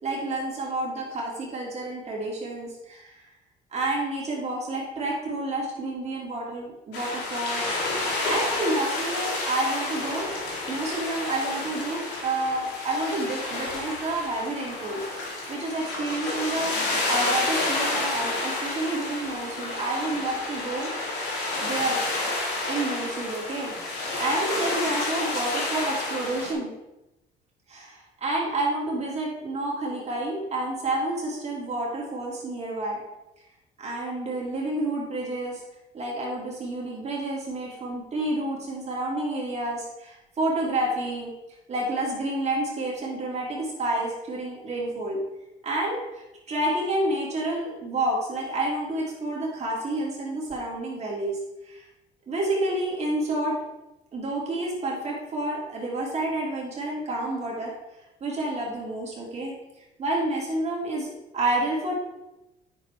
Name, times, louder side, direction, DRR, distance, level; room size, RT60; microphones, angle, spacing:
voice 1, 0.0-3.2 3.7-7.7 8.2-10.3 10.7-20.9 21.6-22.0 22.7-23.7 24.2-26.7 27.7-33.0 33.8-35.6 35.9-41.3 41.7-45.2 45.6-51.4 51.6-51.9 52.3-53.6 54.1-57.7 58.2-59.5 60.0-62.0, right 2 dB, 40° right, -4 dB, 2.0 m, -29 dB
sound 1, 6.9-26.5, left 2 dB, 90° left, 2.0 m, -30 dB
8.9 x 6.4 x 3.2 m, 0.95 s
cardioid pair, 110°, 17 cm